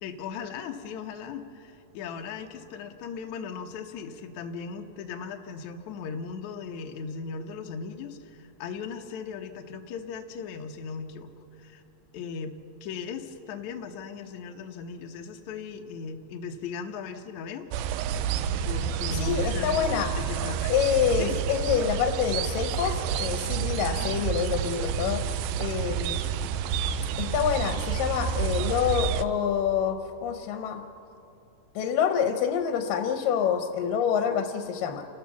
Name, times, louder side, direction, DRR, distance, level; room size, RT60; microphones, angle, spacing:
voice 1, 0.0-11.3 11.6-11.8 12.1-12.5 12.8-17.7 18.7-19.8 20.1-20.7 21.2-21.4 23.8-24.5, left 6 dB, 70° left, 3 dB, 2.3 m, -38 dB
sound 1, 17.7-29.2, right 8 dB, 85° right, 2.3 m, -29 dB
voice 2, 19.1-20.1 20.7-26.3 27.2-30.9 31.8-35.1, left 8 dB, 85° left, 6 dB, 2.6 m, -27 dB
29.0 x 13.5 x 7.2 m, 2.8 s
omnidirectional pair, 3.8 m